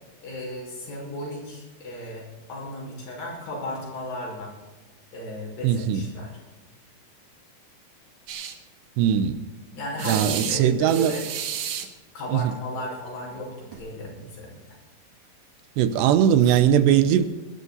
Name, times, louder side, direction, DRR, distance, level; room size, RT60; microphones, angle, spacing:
voice 1, 0.2-4.5 5.1-6.3 9.7-11.3 12.1-14.8, left 1 dB, 55° left, 7.2 m, -35 dB
voice 2, 5.6-6.1 9.0-9.4 10.1-11.1 12.3-12.5 15.8-17.2, right 9 dB, 80° right, 3.0 m, -20 dB
sound 1, 8.3-8.6 10.0-10.6 10.9-11.9 13.3-13.4 13.7-13.9 16.4-16.6, right 9 dB, 60° right, 2.3 m, -32 dB
20.0 x 12.5 x 4.1 m
omnidirectional pair, 4.9 m